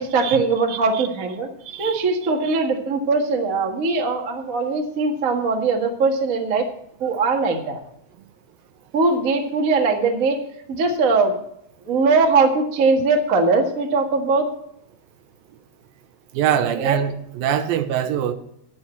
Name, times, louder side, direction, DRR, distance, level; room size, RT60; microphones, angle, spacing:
voice 1, 0.0-1.5 1.8-6.7 7.0-7.8 8.9-10.4 10.7-11.4 11.8-14.5 16.8-17.0, right 4 dB, 55° right, 0.9 m, -20 dB
voice 2, 0.7-1.0 1.7-2.0 2.5-2.6 16.3-18.3, right 9 dB, 75° right, 2.4 m, -24 dB
11.0 x 10.5 x 4.4 m
omnidirectional pair, 4.4 m